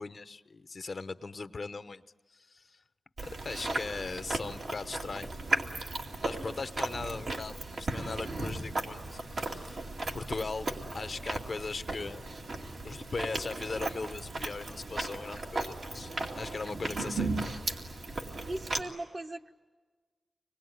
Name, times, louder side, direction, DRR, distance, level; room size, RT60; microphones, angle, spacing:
voice 1, 0.0-2.0 2.3-2.7 3.2-5.3 6.2-12.2 12.8-16.1 16.4-17.6, left 4 dB, 55° left, 11 dB, 0.7 m, -39 dB
Chewing mastication, 3.2-18.8, right 2 dB, 70° right, 2.3 m, -36 dB
voice 2, 18.5-19.5, right 1 dB, 40° right, 5 dB, 1.1 m, -38 dB
25.5 x 20.0 x 9.3 m, 1.4 s
wide cardioid pair, 75°, 0 cm